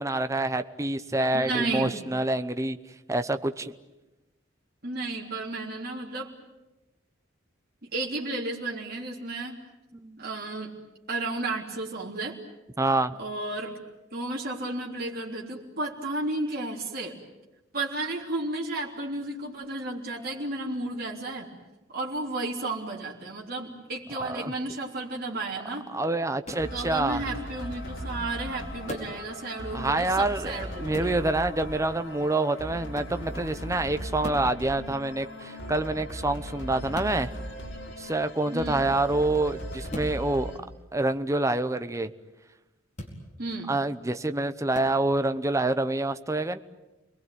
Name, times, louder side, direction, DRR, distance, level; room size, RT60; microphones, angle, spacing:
voice 1, 0.0-2.8 3.1-3.7 9.9-10.2 12.8-13.2 24.2-24.5 25.9-27.4 29.7-37.3 38.0-40.5 40.9-42.1 43.7-46.6, right 2 dB, 15° right, 10 dB, 0.9 m, -27 dB
voice 2, 1.3-1.9 4.8-6.3 7.8-9.5 10.2-10.7 11.1-12.4 13.2-13.7 14.1-17.2 17.7-21.5 21.9-25.8 26.7-31.2 38.5-38.8 43.4-43.7, right 2 dB, 50° right, -2 dB, 3.5 m, -33 dB
sound 1, 26.4-26.7 28.9-29.2 30.9-31.2 32.9-33.2 34.2-34.5 36.9-37.2 39.9-40.2 42.9-43.2 44.7-44.9, left 1 dB, 35° left, 4.7 m, -38 dB
sound 2, 26.5-40.6, equal, 65° left, 4.9 m, -38 dB
29.5 x 21.0 x 9.3 m, 1.0 s
head